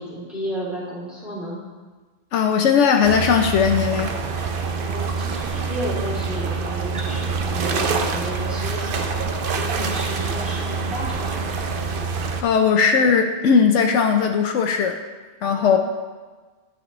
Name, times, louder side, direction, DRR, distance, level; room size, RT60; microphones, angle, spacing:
voice 1, 0.0-1.6 4.7-9.2 9.6-11.5 15.4-15.8, right 1 dB, ahead, -8 dB, 2.8 m, -32 dB
voice 2, 2.3-4.1 12.4-15.0 15.4-15.8, left 6 dB, 80° left, 4 dB, 0.9 m, -18 dB
sound 1, 3.0-12.4, right 4 dB, 55° right, 0.7 m, -26 dB
9.5 x 8.0 x 3.1 m, 1.3 s
omnidirectional pair, 1.2 m